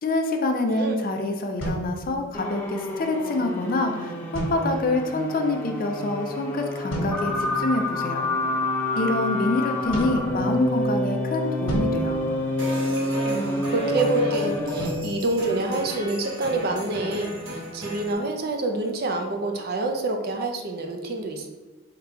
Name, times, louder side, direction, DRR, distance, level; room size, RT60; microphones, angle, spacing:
voice 1, 0.0-8.3 9.0-12.3, left 2 dB, 45° left, 4 dB, 0.4 m, -26 dB
voice 2, 0.7-1.1 13.3-21.5, right 2 dB, 50° right, 4 dB, 0.5 m, -27 dB
sound 1, 1.6-2.7 4.3-5.1 6.9-7.6 9.9-11.0 11.7-13.1 14.8-16.3, right 1 dB, 75° left, 1.2 m, -34 dB
sound 2, 2.3-15.1, left 1 dB, 10° left, 0.7 m, -28 dB
sound 3, 12.6-18.1, equal, 80° right, 1.2 m, -35 dB
3.9 x 2.3 x 4.3 m, 1.2 s
head